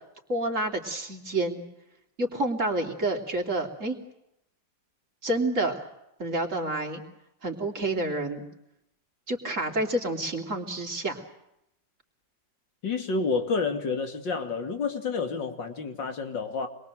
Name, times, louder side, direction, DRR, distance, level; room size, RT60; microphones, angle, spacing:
voice 1, 0.3-1.6 2.2-4.0 5.2-5.8 6.2-7.0 7.4-8.5 9.3-11.2, right 1 dB, 45° right, 2 dB, 3.5 m, -29 dB
voice 2, 12.8-16.7, left 4 dB, 80° left, 5 dB, 3.1 m, -29 dB
27.0 x 22.0 x 7.8 m, 0.82 s
omnidirectional pair, 1.9 m